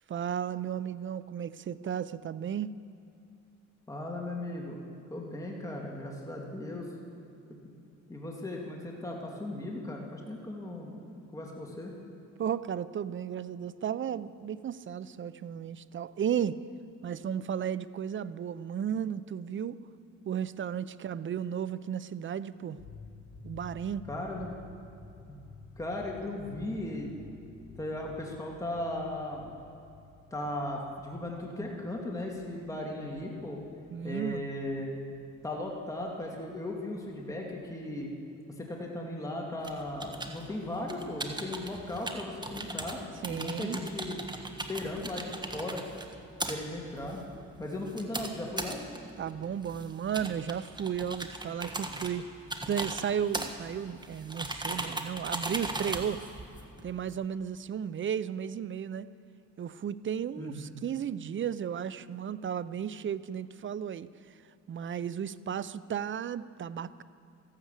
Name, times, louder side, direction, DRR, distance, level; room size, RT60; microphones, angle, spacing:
voice 1, 0.1-2.7 12.4-16.6 17.0-19.8 20.3-22.8 23.4-24.0 33.9-34.5 43.2-43.8 49.2-52.3 52.7-56.2 56.8-59.1 59.6-64.1 64.7-67.0, right 8 dB, 40° right, 16 dB, 0.5 m, -34 dB
voice 2, 3.9-4.8 5.1-6.9 7.6-7.7 8.1-11.9 24.1-24.5 25.3-25.4 25.8-27.1 27.8-29.5 30.3-33.6 34.0-35.0 35.4-38.1 38.6-43.0 43.3-44.2 44.7-45.8 46.5-47.2 47.6-48.8 60.4-60.7, left 1 dB, 10° left, -2 dB, 2.4 m, -37 dB
sound 1, 22.8-37.6, left 4 dB, 35° left, 3.3 m, -53 dB
sound 2, 39.6-57.1, right 2 dB, 15° right, 1.4 m, -39 dB
14.5 x 12.0 x 8.2 m, 2.8 s
cardioid pair, 90°, 30 cm